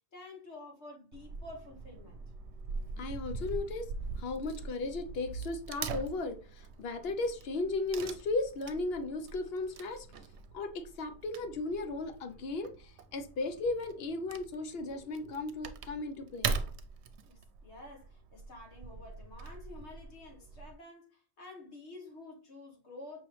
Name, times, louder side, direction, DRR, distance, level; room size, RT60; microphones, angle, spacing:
voice 1, 0.1-2.2 17.3-23.2, left 2 dB, 85° left, 1.6 m, -50 dB
Wood / Tearing, 1.1-20.7, right 5 dB, 80° right, 0.9 m, -42 dB
voice 2, 3.0-3.9 4.2-10.1 10.5-16.5, left 3 dB, 65° left, 0.8 m, -36 dB
5.4 x 3.0 x 3.1 m
omnidirectional pair, 1.1 m